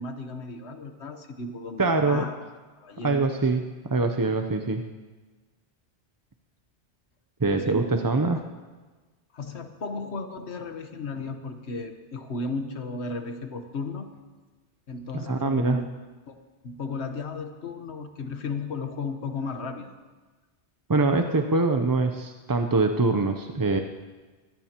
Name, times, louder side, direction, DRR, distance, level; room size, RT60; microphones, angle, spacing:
voice 1, 0.0-2.4 2.8-3.2 7.5-8.5 9.3-14.1 14.9-15.9 16.3-16.4 16.6-19.9, left 3 dB, 75° left, 6 dB, 1.4 m, -35 dB
voice 2, 1.8-2.3 3.0-4.8 7.4-8.4 15.1-15.8 20.9-23.8, right 3 dB, 25° right, 5 dB, 0.5 m, -24 dB
22.5 x 16.5 x 2.9 m, 1.3 s
omnidirectional pair, 1.2 m